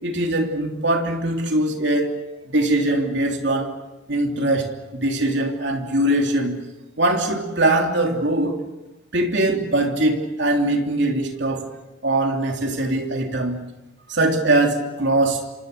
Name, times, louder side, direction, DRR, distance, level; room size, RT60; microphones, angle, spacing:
voice 1, 0.0-2.2 2.5-3.7 4.1-6.6 7.0-8.6 9.1-11.6 12.0-13.6 14.1-15.5, right 1 dB, 60° right, 3 dB, 3.3 m, -21 dB
27.0 x 26.0 x 6.9 m, 1.1 s
head